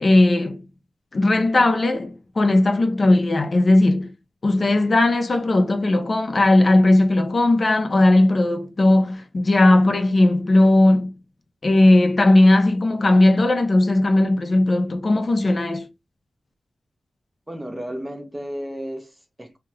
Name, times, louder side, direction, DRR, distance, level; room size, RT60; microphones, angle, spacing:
voice 1, 0.0-0.6 1.1-4.1 4.4-11.1 11.6-15.9, left 2 dB, 35° left, 0.5 m, -17 dB
voice 2, 17.5-19.6, equal, 10° right, 0.5 m, -33 dB
2.7 x 2.4 x 3.1 m
wide cardioid pair, 155°, 0 cm